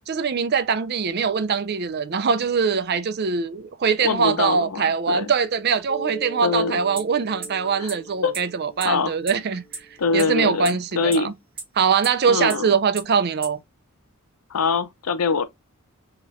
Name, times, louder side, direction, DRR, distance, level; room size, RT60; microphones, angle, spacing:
voice 1, 0.1-9.6 10.1-11.3 11.8-13.6, right 6 dB, 45° right, 0.5 m, -22 dB
voice 2, 4.0-5.3 6.4-6.8 7.8-7.9 8.2-8.3 8.8-9.1 10.0-11.3 12.3-12.7 14.5-15.4, left 4 dB, 80° left, 0.6 m, -24 dB
Mallet percussion, 5.9-10.3, right 4 dB, 20° left, 1.1 m, -39 dB
sound 1, 7.0-7.1 7.4-7.5 7.9-8.0 8.3-8.4 8.8-8.9 9.3-9.4 9.7-9.8 10.2-10.3 10.6-10.7 11.1-11.2 11.6-11.7 12.0-12.1 12.5-12.6 13.0-13.1 13.4-13.5, right 5 dB, 25° right, 1.3 m, -31 dB
6.2 x 3.0 x 2.5 m
head